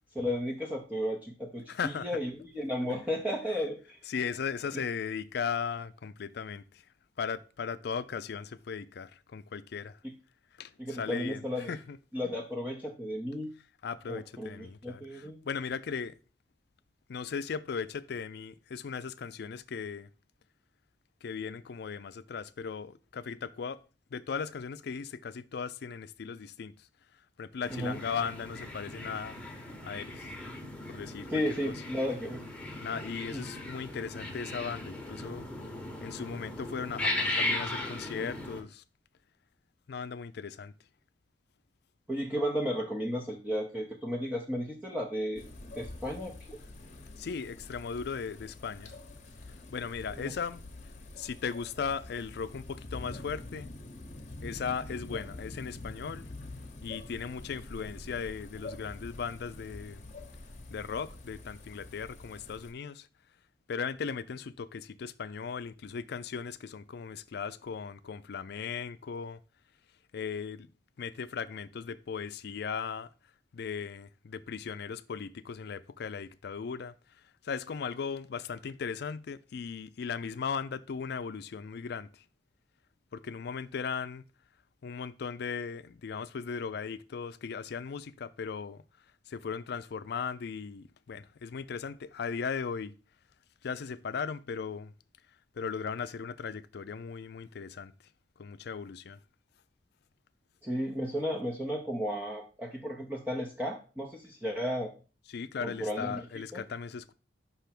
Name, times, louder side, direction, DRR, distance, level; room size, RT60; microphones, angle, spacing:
voice 1, 0.1-4.0 4.7-4.8 10.0-10.1 10.8-11.8 12.1-13.5 14.1-15.4 27.7-28.0 31.3-32.4 33.3-33.4 42.1-45.4 45.8-46.6 50.1-50.3 100.6-104.9 105.6-106.3 106.5-106.6, equal, 10° right, 0.8 m, -34 dB
voice 2, 1.7-2.1 4.1-6.6 7.2-10.0 10.6-12.0 13.8-16.2 17.1-20.1 21.2-23.8 24.1-26.7 27.4-29.4 29.8-30.3 30.9-31.8 32.8-35.5 36.0-38.8 39.9-40.7 47.2-49.0 49.5-50.9 51.2-53.7 54.3-56.2 56.8-60.0 60.7-63.1 63.7-69.4 70.1-70.7 71.0-73.1 73.5-76.9 77.4-82.2 83.1-84.2 84.8-88.8 89.3-92.9 93.6-94.9 95.6-97.9 98.4-99.2 105.3-107.1, left 6 dB, 65° left, 0.4 m, -37 dB
sound 1, 27.6-38.6, left 2 dB, 5° left, 1.1 m, -37 dB
sound 2, 45.4-62.7, left 2 dB, 40° left, 1.0 m, -46 dB
5.7 x 3.5 x 5.8 m
head